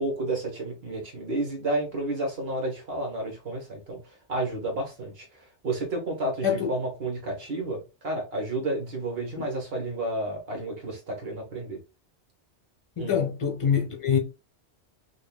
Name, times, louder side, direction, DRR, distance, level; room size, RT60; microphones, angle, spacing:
voice 1, 0.0-4.0 4.3-11.8 13.0-13.2, right 2 dB, 60° right, 1.2 m, -31 dB
voice 2, 13.0-14.2, left 7 dB, 35° left, 0.6 m, -25 dB
5.3 x 2.1 x 2.2 m
omnidirectional pair, 1.1 m